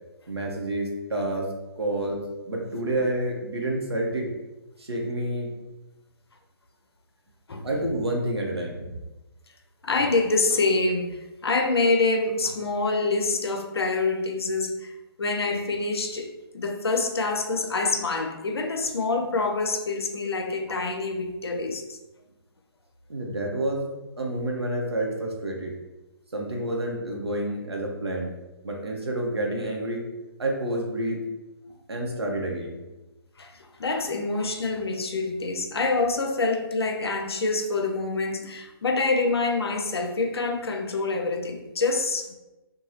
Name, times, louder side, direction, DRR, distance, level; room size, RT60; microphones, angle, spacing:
voice 1, 0.3-4.3 4.8-5.5 7.6-8.9 23.1-23.9 24.2-25.8 26.3-28.3 28.6-30.0 30.4-31.2 31.9-32.8, right 1 dB, 80° right, 0 dB, 0.8 m, -29 dB
voice 2, 7.5-7.8 9.8-22.0 33.4-42.3, left 3 dB, 75° left, 4 dB, 0.5 m, -26 dB
2.6 x 2.2 x 3.1 m, 1.0 s
figure-of-eight pair, 135°, 13 cm